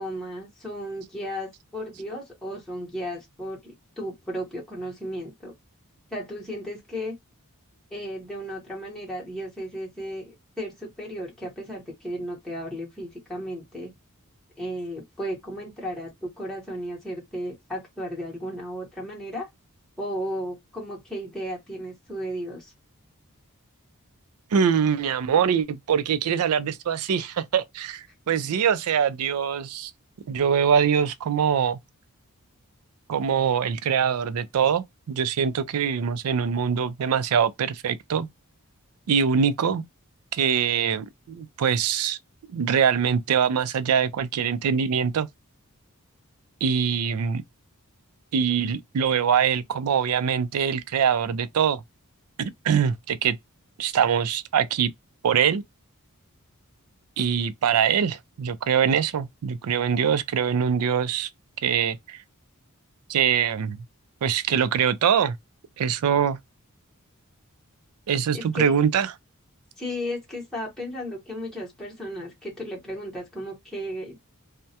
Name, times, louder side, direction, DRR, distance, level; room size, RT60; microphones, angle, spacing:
voice 1, 0.0-5.5 6.1-7.1 7.9-13.9 14.6-19.5 20.0-22.7 68.3-68.8 69.8-74.2, equal, ahead, 0.9 m, -34 dB
voice 2, 24.5-29.9 30.3-31.8 33.1-38.3 39.1-39.8 40.3-42.2 42.5-45.3 46.6-47.4 48.3-51.8 52.4-53.4 53.8-54.9 55.2-55.6 57.2-61.3 61.6-62.2 63.1-63.8 64.2-65.4 65.8-66.4 68.1-69.1, right 7 dB, 70° right, 0.4 m, -23 dB
2.2 x 2.1 x 2.7 m
head